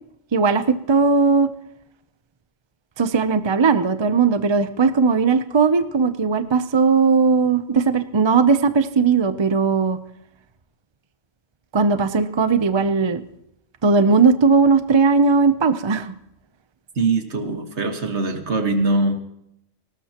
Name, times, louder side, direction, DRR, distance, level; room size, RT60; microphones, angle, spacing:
voice 1, 0.3-1.5 3.0-10.0 11.7-13.2 13.8-16.1, right 5 dB, 35° right, 11 dB, 0.4 m, -18 dB
voice 2, 17.0-19.2, right 3 dB, 55° right, 5 dB, 1.8 m, -22 dB
19.0 x 18.5 x 3.0 m, 0.78 s
omnidirectional pair, 1.4 m